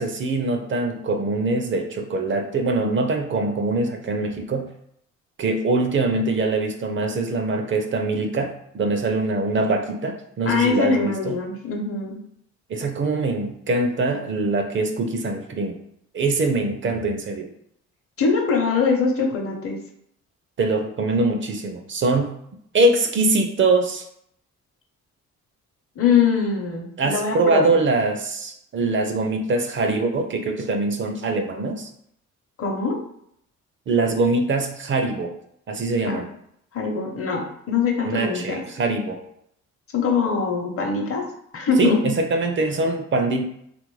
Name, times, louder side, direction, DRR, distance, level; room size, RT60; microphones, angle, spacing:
voice 1, 0.0-4.7 5.4-11.4 12.7-15.8 16.1-17.5 20.6-22.3 22.7-24.1 27.0-31.9 33.9-35.3 35.7-36.3 38.0-39.2 41.8-43.4, right 3 dB, 40° right, 5 dB, 0.5 m, -23 dB
voice 2, 10.4-12.2 18.2-19.8 26.0-27.7 32.6-33.0 36.1-36.2 36.7-38.6 39.9-41.3 41.5-42.1, left 5 dB, 50° left, 2 dB, 0.8 m, -22 dB
3.0 x 2.5 x 3.1 m, 0.72 s
cardioid pair, 90°, 30 cm